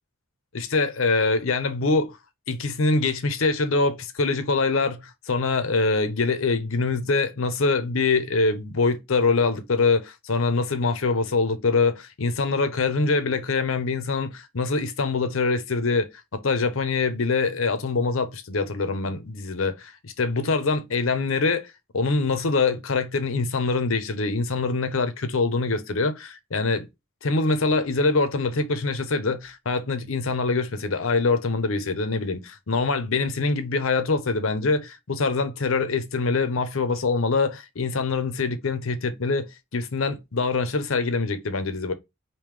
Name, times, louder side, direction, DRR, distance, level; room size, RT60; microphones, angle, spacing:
voice 1, 0.5-2.2 2.5-26.9 27.2-41.9, left 3 dB, 70° left, 0.7 m, -24 dB
3.2 x 2.7 x 3.5 m
head